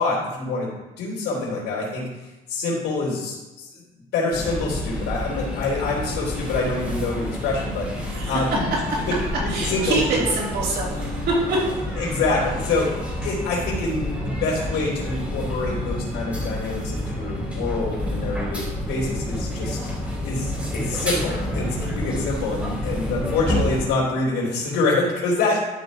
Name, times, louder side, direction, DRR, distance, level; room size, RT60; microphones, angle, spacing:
voice 1, 0.0-3.8 4.1-8.6 9.4-10.2 12.0-12.9 13.2-25.6, left 3 dB, 85° left, -8 dB, 3.2 m, -26 dB
sound 1, 4.3-23.9, left 1 dB, 5° right, 3.3 m, -29 dB
voice 2, 8.0-8.5 9.5-11.6, right 2 dB, 70° right, -4 dB, 3.2 m, -25 dB
12.5 x 4.7 x 4.0 m, 1.1 s
cardioid pair, 110°, 17 cm